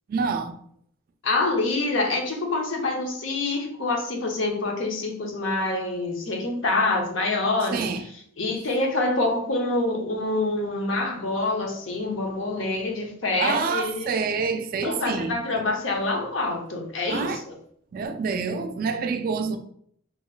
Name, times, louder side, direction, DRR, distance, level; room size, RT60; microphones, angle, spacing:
voice 1, 0.1-0.6 7.7-8.0 13.4-15.4 17.1-17.4 17.9-19.6, right 5 dB, 45° right, 0.3 m, -27 dB
voice 2, 1.2-7.8 8.4-14.1 14.8-17.5, left 2 dB, 70° left, 0.7 m, -26 dB
2.8 x 2.0 x 3.8 m
head